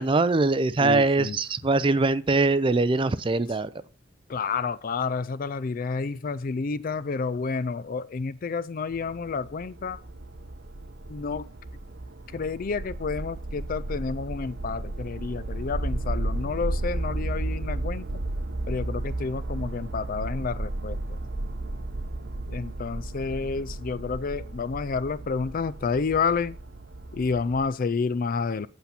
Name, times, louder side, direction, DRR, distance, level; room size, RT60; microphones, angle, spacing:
voice 1, 0.0-3.7, right 3 dB, 25° right, 0.4 m, -22 dB
voice 2, 0.8-1.4 4.3-10.0 11.1-11.5 12.3-18.1 18.7-21.0 22.5-26.5 27.1-28.7, left 5 dB, 45° left, 0.4 m, -30 dB
sound 1, 8.9-27.7, right 2 dB, 60° right, 0.8 m, -34 dB
8.3 x 6.9 x 5.8 m
head